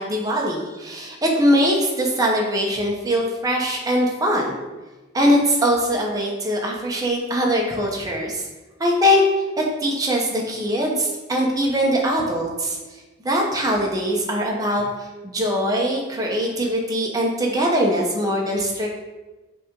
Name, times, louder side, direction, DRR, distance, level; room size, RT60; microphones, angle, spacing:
voice 1, 0.0-4.5 5.1-8.4 8.8-9.2 9.8-12.8 13.2-18.9, equal, 15° right, -1 dB, 0.9 m, -22 dB
5.9 x 3.6 x 5.2 m, 1.2 s
head